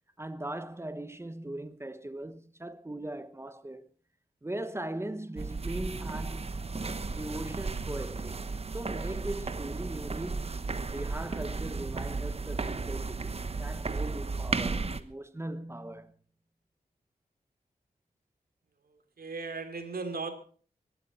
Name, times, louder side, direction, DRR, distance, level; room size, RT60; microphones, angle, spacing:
voice 1, 0.2-3.9 4.4-6.6 7.1-8.4 8.7-16.2, right 1 dB, 15° right, 1.1 m, -39 dB
sound 1, 5.4-15.0, right 3 dB, 40° right, 1.1 m, -34 dB
voice 2, 18.9-20.3, right 4 dB, 80° right, 2.9 m, -37 dB
19.5 x 15.0 x 4.2 m
wide cardioid pair, 105°, 15 cm